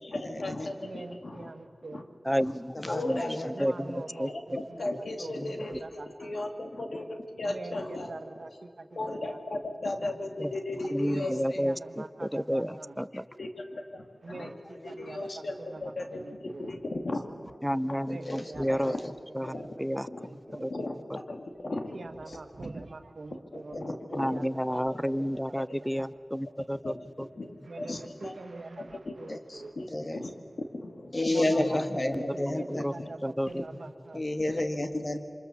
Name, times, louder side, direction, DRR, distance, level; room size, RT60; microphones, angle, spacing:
voice 1, 0.0-1.5 1.8-2.1 2.4-2.5 2.9-3.7 4.1-4.4 4.8-8.6 8.9-11.6 13.4-14.6 14.8-17.3 17.9-18.0 18.7-19.1 19.4-19.7 20.0-22.9 23.3-24.4 24.7-25.0 25.6-25.7 26.8-27.0 27.4-28.4 28.8-29.2 29.8-31.1 31.5-31.8 33.0-33.1 34.5-34.6, left 2 dB, 80° left, 4 dB, 2.2 m, -37 dB
voice 2, 0.8-2.0 3.7-4.3 5.2-5.3 6.0-6.3 7.5-7.7 8.1-8.5 8.8-9.0 11.1-11.7 12.0-12.6 14.2-14.5 15.0-15.3 16.5-16.7 18.1-18.6 19.5-19.6 20.5-20.7 21.9-23.7 24.3-24.4 27.7-27.9 28.4-29.3 29.6-29.7 31.3-31.4 32.3-32.8 33.5-34.2, right 3 dB, 85° right, 8 dB, 1.4 m, -43 dB
voice 3, 2.2-2.7 3.0-3.2 3.5-4.3 10.4-10.5 10.9-13.3 17.6-18.9 19.3-20.1 20.6-20.7 24.2-27.3 32.1-33.0 33.2-33.6 34.1-34.2, equal, ahead, 16 dB, 0.6 m, -31 dB
voice 4, 2.8-3.5 14.7-14.9 18.1-18.5 18.8-19.1 23.7-24.0 29.3-29.4 29.9-30.2 31.1-33.1 34.1-35.2, left 1 dB, 40° left, 6 dB, 1.9 m, -31 dB
28.0 x 25.0 x 7.1 m, 2.3 s
wide cardioid pair, 70°, 0 cm